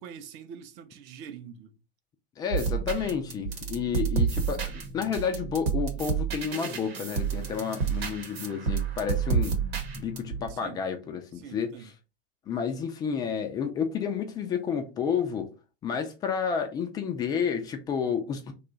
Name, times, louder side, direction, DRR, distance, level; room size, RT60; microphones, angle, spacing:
voice 1, 0.0-1.7 10.4-10.8 11.3-11.9, right 7 dB, 35° right, 0.6 m, -44 dB
voice 2, 2.4-9.6 9.9-11.7 12.5-15.5 15.8-18.5, left 7 dB, 15° left, 0.3 m, -30 dB
sound 1, 2.5-10.5, right 6 dB, 75° right, 1.0 m, -30 dB
2.9 x 2.3 x 3.8 m
hypercardioid pair, 105°, 31 cm